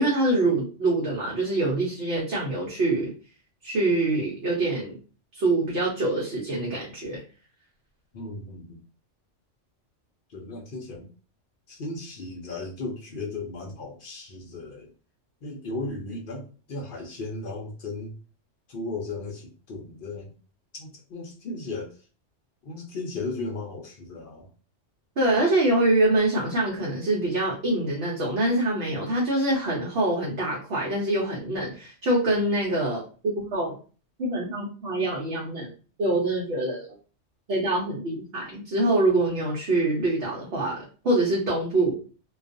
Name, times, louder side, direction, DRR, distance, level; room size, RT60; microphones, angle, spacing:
voice 1, 0.0-3.1 3.6-5.0 5.3-7.2 25.2-33.8 34.2-35.7 36.0-36.9 37.5-42.0, right 2 dB, 60° right, -4 dB, 0.9 m, -25 dB
voice 2, 8.1-8.8 10.3-11.1 11.7-14.9 15.4-18.1 18.7-20.3 20.7-22.1 22.6-24.5, left 2 dB, 55° left, 1 dB, 0.6 m, -36 dB
2.3 x 2.3 x 2.5 m, 0.37 s
omnidirectional pair, 1.2 m